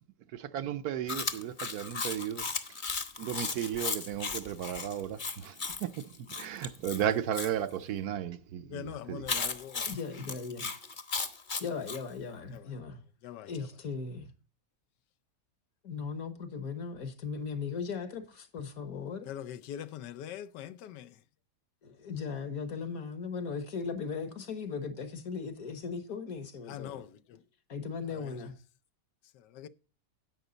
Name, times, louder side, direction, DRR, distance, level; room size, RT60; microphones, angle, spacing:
voice 1, 0.3-2.5 3.2-9.2, right 10 dB, 70° right, 1.1 m, -34 dB
Chewing mastication, 1.1-7.5 9.3-12.0, left 4 dB, 35° left, 1.0 m, -36 dB
voice 2, 8.7-9.9 13.2-13.5 19.3-21.1 26.7-27.1 29.6-29.7, left 10 dB, 80° left, 1.3 m, -42 dB
voice 3, 9.8-10.7 11.6-13.0 13.5-14.3 15.8-19.3 21.8-27.0 27.7-28.5, left 5 dB, 60° left, 1.6 m, -38 dB
11.0 x 8.0 x 3.9 m
omnidirectional pair, 1.8 m